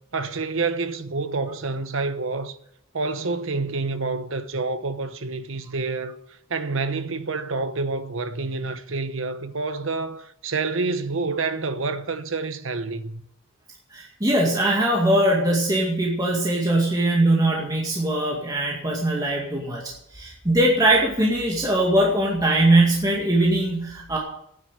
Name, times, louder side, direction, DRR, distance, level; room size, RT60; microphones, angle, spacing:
voice 1, 0.1-2.6 2.9-6.2 6.5-13.2, right 3 dB, 65° right, 1.0 m, -28 dB
voice 2, 13.9-24.2, right 1 dB, 20° right, 2.2 m, -21 dB
9.8 x 9.4 x 9.1 m
head